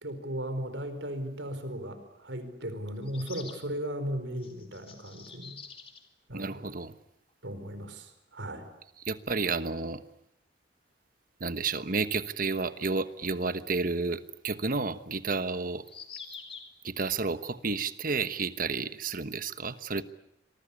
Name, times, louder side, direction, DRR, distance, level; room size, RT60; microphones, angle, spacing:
voice 1, 0.0-5.6 6.3-6.7 7.4-8.7, equal, 80° right, 10 dB, 4.4 m, -36 dB
sound 1, 3.0-3.7 4.4-6.1 7.3-7.4 7.6-7.7 10.1-10.2 13.3-13.4 15.8-16.8, left 6 dB, 30° left, 3.3 m, -46 dB
voice 2, 6.3-6.9 9.0-10.0 11.4-15.8 16.8-20.0, right 4 dB, 50° right, 12 dB, 1.2 m, -31 dB
27.0 x 23.0 x 8.5 m, 0.78 s
head